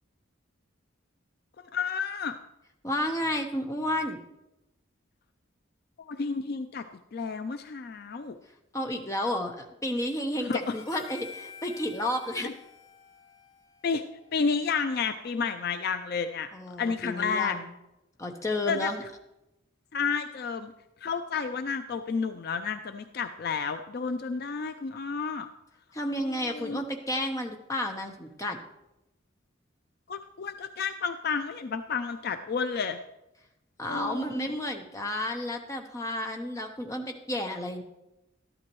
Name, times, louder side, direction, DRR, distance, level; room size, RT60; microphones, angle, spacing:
voice 1, 1.6-2.4 6.0-6.8 7.1-8.4 10.4-10.6 12.4-12.5 13.8-14.0 14.3-16.5 16.8-17.6 18.7-18.9 19.9-20.7 21.0-25.5 26.2-26.8 30.1-33.0 33.9-34.5, left 5 dB, 50° left, 8 dB, 0.4 m, -31 dB
voice 2, 2.8-4.2 8.7-12.5 16.5-17.7 18.2-19.0 25.9-28.6 33.8-37.8, left 1 dB, 15° left, 3 dB, 0.8 m, -31 dB
Harmonica, 10.6-15.1, left 6 dB, 90° left, 1.9 m, -49 dB
13.0 x 11.5 x 3.1 m, 0.94 s
head